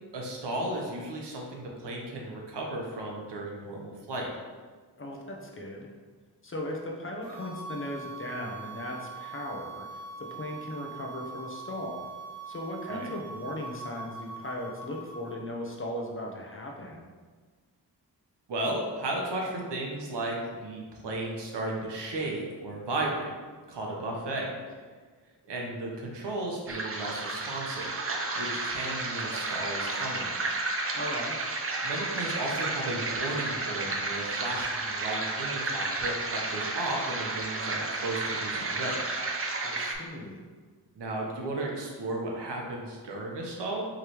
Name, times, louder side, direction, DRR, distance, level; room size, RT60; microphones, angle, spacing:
voice 1, 0.1-4.3 12.9-13.1 18.5-23.3 23.7-24.5 25.5-27.9 28.4-30.3 31.8-39.0 40.9-43.9, right 2 dB, 80° right, -1 dB, 1.0 m, -34 dB
voice 2, 5.0-5.9 6.4-12.0 12.5-17.1 30.9-31.4 39.6-40.4, left 1 dB, 30° left, -1 dB, 0.7 m, -37 dB
sound 1, 7.2-15.4, right 4 dB, 55° right, 1.0 m, -43 dB
sound 2, 26.7-39.9, right 3 dB, 35° right, 0.5 m, -32 dB
5.0 x 3.2 x 3.0 m, 1.5 s
wide cardioid pair, 90°, 42 cm